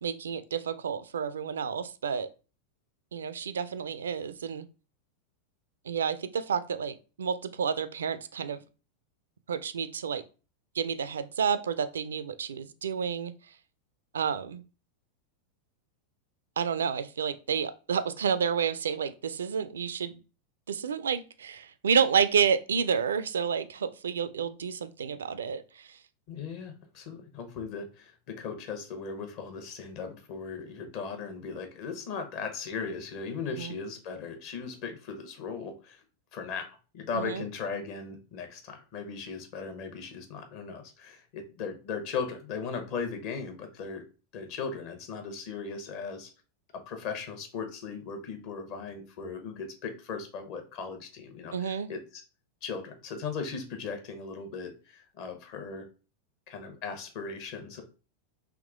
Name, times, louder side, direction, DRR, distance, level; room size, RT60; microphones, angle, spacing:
voice 1, 0.0-2.3 3.1-4.7 5.9-8.6 9.5-10.2 10.8-13.3 14.1-14.6 16.6-20.2 20.7-26.0 33.5-33.7 37.1-37.4 51.5-51.9, right 7 dB, 65° right, 0.3 m, -30 dB
voice 2, 26.3-36.0 36.3-44.0 44.3-46.3 46.7-52.2 52.6-55.9 56.5-57.8, left 5 dB, 45° left, 1.0 m, -38 dB
3.6 x 3.0 x 3.5 m
figure-of-eight pair, 90°, 0 cm